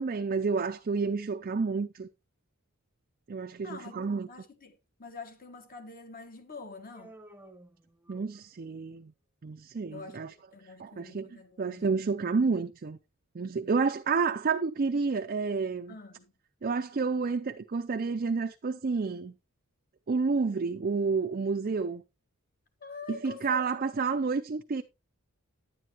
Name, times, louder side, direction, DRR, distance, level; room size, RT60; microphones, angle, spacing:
voice 1, 0.0-2.1 3.3-4.3 8.1-9.1 9.4-10.3 10.8-13.0 13.3-16.0 16.6-19.4 20.1-22.0 23.1-24.8, right 4 dB, 40° right, 0.4 m, -30 dB
voice 2, 3.6-7.1 9.9-11.8 15.9-16.3 22.8-23.6, left 4 dB, 40° left, 1.4 m, -46 dB
Human voice, 6.9-8.7, right 1 dB, 5° right, 0.9 m, -53 dB
9.9 x 9.4 x 2.9 m
head